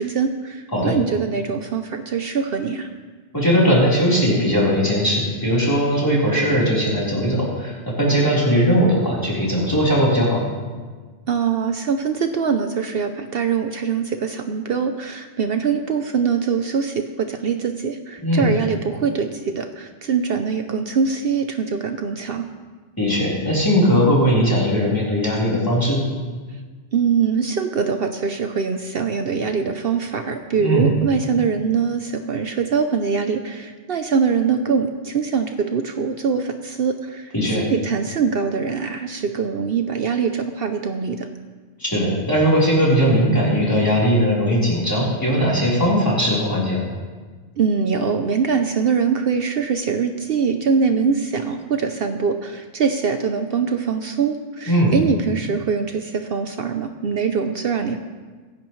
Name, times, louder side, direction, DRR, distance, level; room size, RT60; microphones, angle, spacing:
voice 1, 0.0-2.9 11.3-22.4 26.9-41.3 47.6-58.0, right 6 dB, 60° right, 6 dB, 0.9 m, -23 dB
voice 2, 3.3-10.4 18.2-18.5 23.0-26.0 30.6-30.9 37.3-37.6 41.8-46.8 54.7-55.0, equal, 20° left, -6 dB, 4.0 m, -19 dB
24.0 x 10.5 x 3.2 m, 1.4 s
omnidirectional pair, 1.1 m